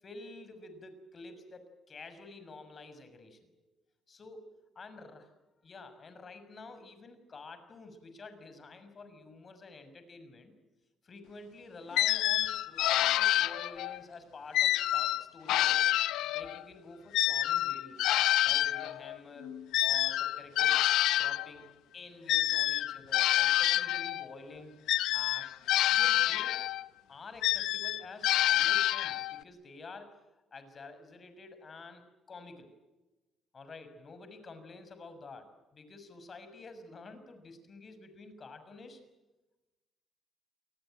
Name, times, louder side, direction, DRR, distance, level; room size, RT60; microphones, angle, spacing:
voice 1, 0.0-3.6 4.1-4.5 4.8-5.3 5.6-10.5 11.0-15.9 16.3-18.0 18.4-19.5 19.8-20.8 21.2-24.8 25.1-25.5 25.9-26.6 27.1-30.1 30.5-32.7 33.5-39.0, left 3 dB, 40° left, 9 dB, 6.3 m, -49 dB
sound 1, 12.0-14.0 14.5-16.6 17.1-21.5 22.3-24.3 24.9-26.9 27.4-29.4, left 14 dB, 90° left, 0.8 m, -28 dB
28.5 x 20.0 x 7.8 m, 1.1 s
cardioid pair, 90°, 0 cm